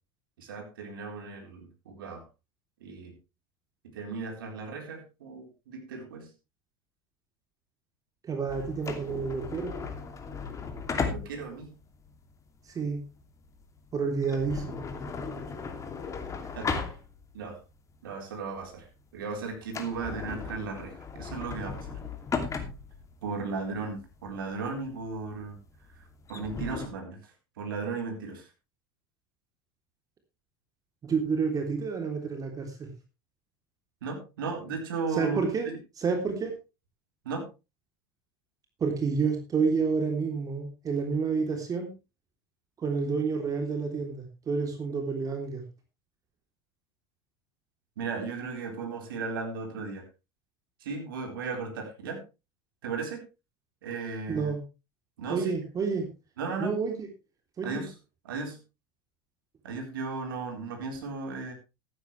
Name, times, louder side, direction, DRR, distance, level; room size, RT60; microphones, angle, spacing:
voice 1, 0.4-2.2 2.8-3.2 3.8-6.3 10.9-11.7 16.4-16.7 17.3-17.6 18.0-18.9 19.1-21.9 23.2-25.6 26.0-27.3 27.6-28.5 34.0-35.4 35.6-35.8 37.2-37.5 48.0-50.0 50.8-52.2 52.8-53.3 53.8-54.5 55.2-55.5 56.4-56.8 57.6-57.9 58.2-58.6 59.6-61.5, right 4 dB, 75° right, 3 dB, 4.1 m, -36 dB
voice 2, 8.2-9.7 12.7-13.0 13.9-14.8 31.0-32.9 35.2-35.7 36.0-36.5 38.8-41.9 42.8-45.6 54.3-54.6 55.3-56.1 56.6-57.1 57.6-57.8, right 5 dB, 30° right, 4 dB, 3.3 m, -29 dB
sound 1, 8.5-17.5 17.9-18.0 18.6-18.9 19.2-19.3 19.6-26.9, left 5 dB, 25° left, 2.8 m, -36 dB
14.0 x 12.0 x 3.3 m, 0.28 s
hypercardioid pair, 80°, 12 cm